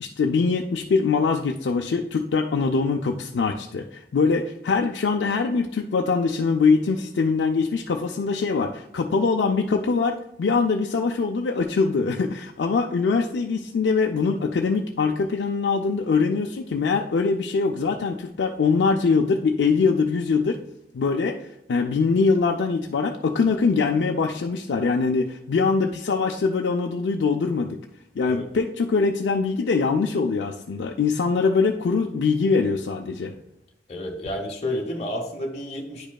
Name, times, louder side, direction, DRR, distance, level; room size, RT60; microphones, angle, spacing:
voice 1, 0.0-20.6 20.9-27.8 28.2-33.3, left 4 dB, 85° left, 2 dB, 0.4 m, -23 dB
voice 2, 33.9-36.1, left 1 dB, 35° left, -1 dB, 1.0 m, -30 dB
9.5 x 5.1 x 2.3 m, 0.81 s
head